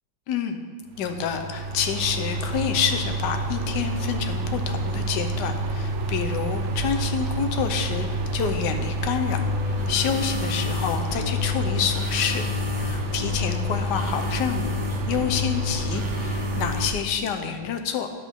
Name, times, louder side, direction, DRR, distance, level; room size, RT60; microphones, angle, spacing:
voice 1, 0.3-0.6 1.0-12.4 12.8-14.7 15.1-18.1, left 7 dB, 85° left, 6 dB, 1.3 m, -28 dB
sound 1, 1.0-16.9, right 2 dB, 60° right, 0.7 m, -28 dB
sound 2, 9.2-16.9, left 1 dB, 30° right, 0.5 m, -25 dB
11.0 x 7.3 x 3.5 m, 1.5 s
omnidirectional pair, 1.8 m